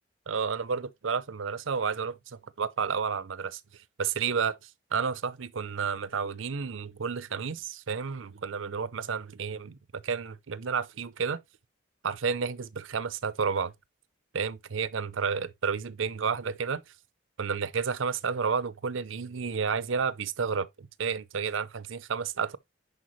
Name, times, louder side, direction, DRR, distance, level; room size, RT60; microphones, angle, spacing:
voice 1, 0.3-3.6 4.0-4.6 4.9-11.4 12.0-13.7 14.3-16.8 17.4-22.6, right 6 dB, 85° right, 0.6 m, -31 dB
10.5 x 4.5 x 3.1 m
head